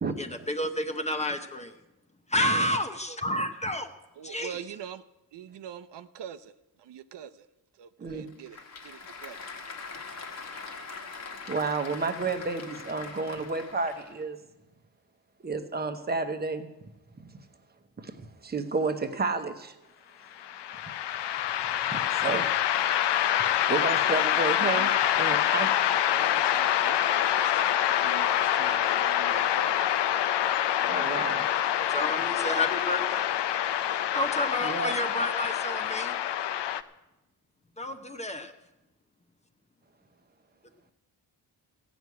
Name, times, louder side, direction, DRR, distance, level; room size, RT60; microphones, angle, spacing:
voice 1, 0.2-1.7 2.3-3.9 4.2-4.5 31.9-33.3 34.1-36.2 37.8-38.5, left 1 dB, 15° left, 7 dB, 0.7 m, -30 dB
voice 2, 4.2-5.0 5.3-6.5 6.8-7.5 7.8-9.5 23.3-23.4 24.6-25.5 25.9-29.9, right 9 dB, 85° right, 12 dB, 0.8 m, -44 dB
Applause / Crowd, 8.1-14.3, left 4 dB, 40° left, 1.4 m, -42 dB
voice 3, 11.5-14.4 15.4-16.7 18.0-19.7 21.9-22.5 23.7-24.9 25.2-25.7 30.8-31.5 34.6-34.9, right 4 dB, 25° right, 7 dB, 1.0 m, -31 dB
sound 1, 20.4-36.8, left 11 dB, 80° left, 0.7 m, -26 dB
16.0 x 6.1 x 9.4 m, 0.96 s
wide cardioid pair, 170°, 41 cm